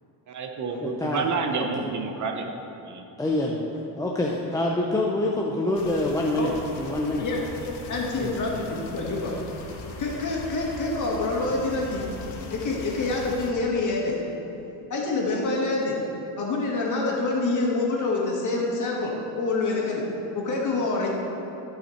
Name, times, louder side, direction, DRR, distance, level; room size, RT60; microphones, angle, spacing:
voice 1, 0.3-2.5 2.9-3.1, right 4 dB, 40° right, 4 dB, 0.9 m, -29 dB
voice 2, 0.8-1.3 1.6-1.7 3.2-3.6 4.0-6.5 6.7-7.3 8.2-8.4, left 1 dB, 10° left, -2 dB, 0.6 m, -26 dB
sound 1, 5.8-13.5, left 3 dB, 65° left, 1.5 m, -40 dB
voice 3, 7.7-9.3 10.0-12.0 12.5-14.1 14.9-16.0 16.4-20.0 20.3-21.1, left 3 dB, 45° left, -3 dB, 2.4 m, -26 dB
14.5 x 5.8 x 4.5 m, 3.0 s
cardioid pair, 120°, 43 cm